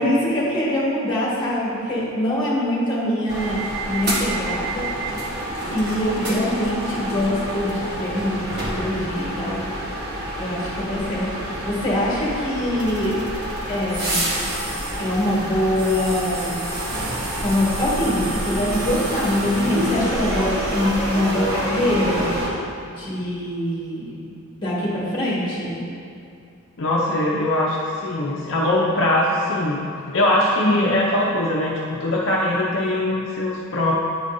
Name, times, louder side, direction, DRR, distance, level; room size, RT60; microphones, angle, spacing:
voice 1, 0.0-4.9 5.7-9.7 10.4-11.3 11.6-13.2 13.7-14.3 15.0-16.6 17.4-22.2 23.0-24.1 24.6-25.8 30.6-30.9, left 1 dB, 20° left, -7 dB, 1.6 m, -23 dB
sound 1, 3.3-22.5, right 1 dB, 45° right, 1.1 m, -27 dB
sound 2, 11.5-11.8 12.8-21.7, right 1 dB, 90° right, 0.9 m, -39 dB
voice 2, 26.8-29.8 30.1-33.9, left 1 dB, 60° left, -3 dB, 0.6 m, -21 dB
9.3 x 5.0 x 2.6 m, 2.4 s
head